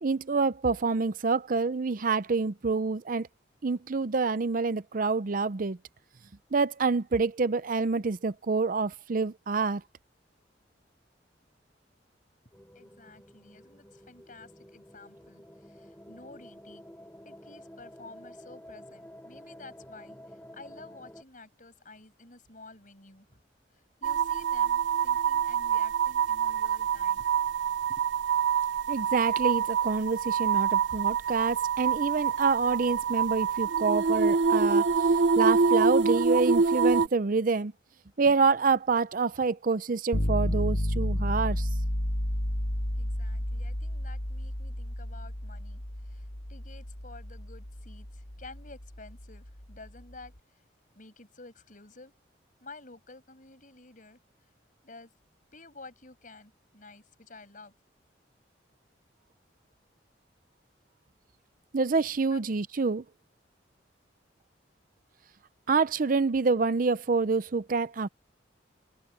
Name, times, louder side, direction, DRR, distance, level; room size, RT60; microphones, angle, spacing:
voice 1, 0.0-3.3 3.6-5.8 6.5-9.8 28.9-37.7 38.2-41.7 61.7-63.0 65.7-68.1, right 4 dB, 50° right, 0.5 m, -27 dB
sound 1, 12.5-21.2, equal, 10° left, 6.9 m, -50 dB
voice 2, 12.7-16.8 17.2-23.4 23.7-27.3 27.9-28.1 43.0-50.6 50.9-52.1 52.6-54.2 54.8-55.1 55.5-57.7 62.3-62.4, left 3 dB, 45° left, 6.5 m, -51 dB
sound 2, 24.0-37.1, right 6 dB, 90° right, 0.8 m, -26 dB
sound 3, 40.1-50.0, equal, 75° left, 2.2 m, -32 dB
head